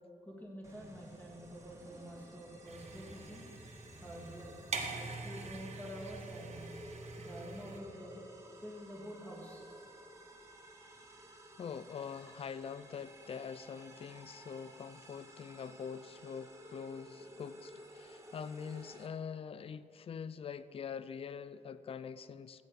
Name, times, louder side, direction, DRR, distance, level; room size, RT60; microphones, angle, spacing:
voice 1, 0.2-3.4 4.0-4.6 5.0-6.7 7.2-8.2 8.6-9.6, equal, 10° left, 2.7 m, -48 dB
sound 1, 0.6-19.1, right 1 dB, 20° right, 1.6 m, -54 dB
sound 2, 2.6-7.8, right 3 dB, 50° right, 1.4 m, -44 dB
voice 2, 11.6-22.6, left 6 dB, 40° left, 0.4 m, -44 dB
15.0 x 8.2 x 5.1 m
cardioid pair, 105°, 14 cm